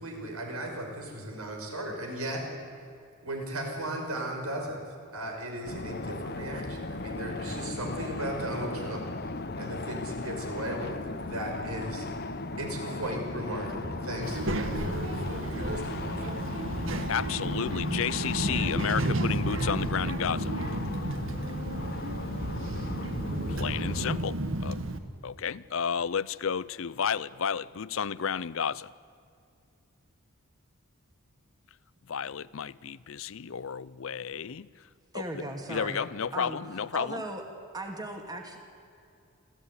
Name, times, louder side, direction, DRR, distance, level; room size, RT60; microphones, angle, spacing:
voice 1, 0.0-2.5 3.2-4.8 5.1-9.0 9.6-12.1 12.6-16.8, right 1 dB, 80° right, 5.7 m, -36 dB
sound 1, 5.6-24.2, left 2 dB, 45° left, 1.0 m, -37 dB
Child speech kid speaking, 14.2-25.0, right 1 dB, 60° right, 1.6 m, -32 dB
voice 2, 17.1-20.5 23.5-24.8 25.2-28.9 32.1-34.7 35.1-35.4 35.7-37.2, left 7 dB, 65° left, 0.5 m, -32 dB
voice 3, 35.1-36.1 36.3-36.6 36.9-37.4 37.7-38.6, right 1 dB, 15° right, 2.3 m, -37 dB
27.5 x 15.5 x 9.7 m
head